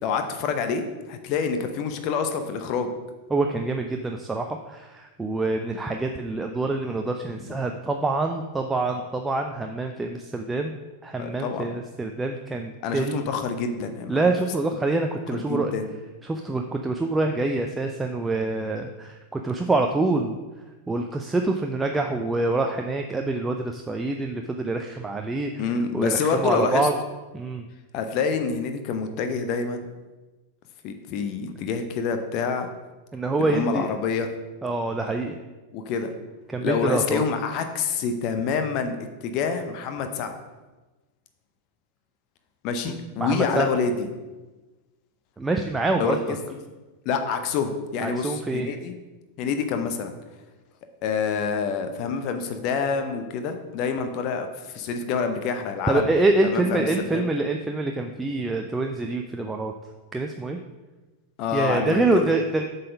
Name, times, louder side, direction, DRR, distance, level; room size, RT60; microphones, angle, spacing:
voice 1, 0.0-2.9 11.2-11.7 12.8-14.3 15.5-15.8 25.6-26.9 27.9-29.9 30.8-32.7 33.4-34.3 35.7-36.1 36.6-38.9 39.2-40.4 42.6-44.1 46.0-46.2 47.0-48.9 49.4-50.1 51.0-56.1 56.4-57.2 61.4-62.3, left 5 dB, 40° left, 7 dB, 0.7 m, -27 dB
voice 2, 3.3-10.7 11.0-13.3 14.1-15.7 16.2-20.4 20.9-25.6 25.9-26.9 27.3-27.6 33.1-33.9 34.6-35.4 36.5-37.2 42.9-43.0 43.2-43.7 45.4-46.2 48.0-48.7 55.9-59.7 60.1-60.6 61.5-62.6, right 2 dB, 10° right, 3 dB, 0.4 m, -26 dB
7.5 x 4.1 x 5.2 m, 1.2 s
figure-of-eight pair, 90°, 0 cm